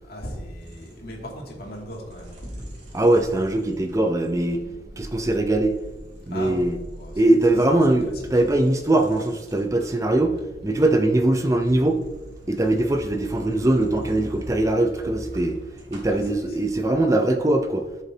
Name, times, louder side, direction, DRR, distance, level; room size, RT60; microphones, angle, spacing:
voice 1, 0.0-2.7 6.3-7.4 7.7-8.6 16.1-16.6, equal, 60° left, -1 dB, 2.5 m, -38 dB
sound 1, 0.6-16.3, right 1 dB, 40° right, 3.3 m, -45 dB
voice 2, 2.9-4.6 5.0-5.8 6.3-6.8 7.1-10.4 10.6-12.0 12.5-15.6 15.9-17.8, right 1 dB, 15° right, 5 dB, 0.6 m, -21 dB
15.0 x 7.0 x 2.8 m, 1.1 s
head